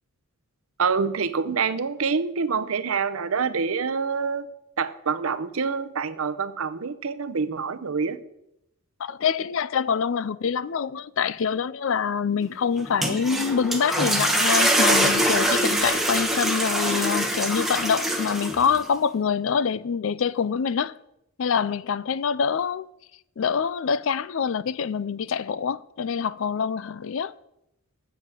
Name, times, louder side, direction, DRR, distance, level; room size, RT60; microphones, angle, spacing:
voice 1, 0.8-4.5 4.8-8.2, right 5 dB, 70° right, 0.7 m, -26 dB
voice 2, 9.0-20.9 21.4-22.9 23.4-27.3, left 6 dB, 60° left, 0.4 m, -25 dB
sound 1, 12.8-18.8, right 1 dB, ahead, 1.1 m, -23 dB
7.7 x 7.4 x 7.7 m
head